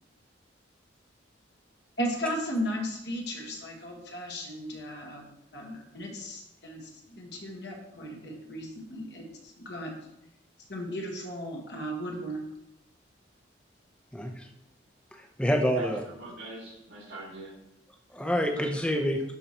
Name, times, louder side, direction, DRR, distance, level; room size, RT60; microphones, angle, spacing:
voice 1, 2.0-5.2 5.5-9.3 9.6-9.9 10.7-12.4, equal, 60° left, 0 dB, 1.4 m, -35 dB
voice 2, 14.1-14.5 15.4-16.0 18.1-19.2, equal, 5° left, 2 dB, 0.7 m, -27 dB
voice 3, 15.7-17.5 18.3-18.7, right 1 dB, 80° right, -10 dB, 2.7 m, -43 dB
12.0 x 4.5 x 3.0 m, 0.83 s
head